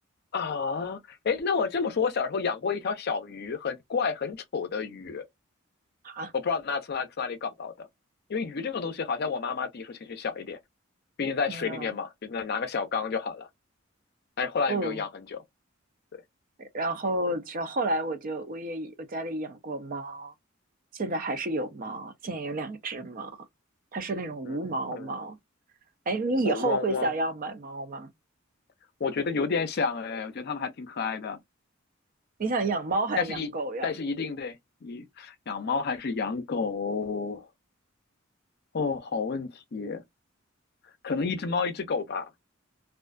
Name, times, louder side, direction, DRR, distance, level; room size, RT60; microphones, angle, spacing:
voice 1, 0.3-5.2 6.3-7.7 8.3-10.6 11.2-13.5 14.4-15.4 24.5-24.6 24.9-25.1 26.4-27.1 29.0-31.4 33.2-33.5 33.8-34.6 34.8-37.5 38.7-40.0 41.0-42.3, left 5 dB, 50° left, 0.5 m, -30 dB
voice 2, 11.5-11.9 14.7-15.0 16.6-20.3 20.9-23.4 23.9-25.4 26.1-28.1 32.4-33.9, right 2 dB, 45° right, 0.5 m, -31 dB
2.4 x 2.3 x 2.3 m
head